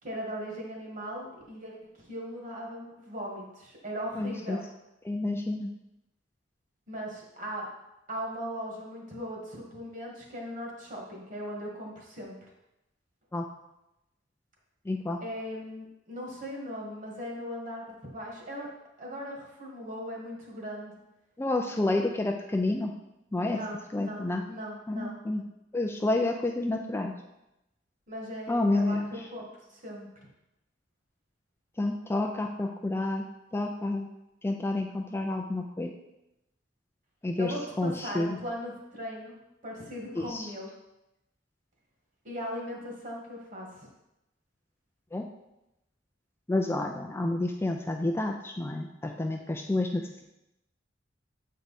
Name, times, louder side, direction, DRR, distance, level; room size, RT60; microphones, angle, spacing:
voice 1, 0.0-4.6 6.9-7.7 8.1-12.3 15.2-18.7 19.0-20.9 23.4-25.1 28.1-30.1 37.4-39.3 39.6-40.7 42.2-43.9, equal, 45° right, -1 dB, 1.7 m, -38 dB
voice 2, 4.2-4.6 5.0-5.7 13.3-13.5 14.9-15.2 21.4-22.9 23.3-23.6 23.9-24.5 24.9-25.5 25.7-27.1 28.5-29.3 31.8-33.3 33.5-34.1 34.4-35.9 37.2-38.4 40.2-40.5 45.1-45.3 46.5-50.2, left 2 dB, 15° left, 2 dB, 0.4 m, -29 dB
7.6 x 4.6 x 4.1 m, 0.90 s
head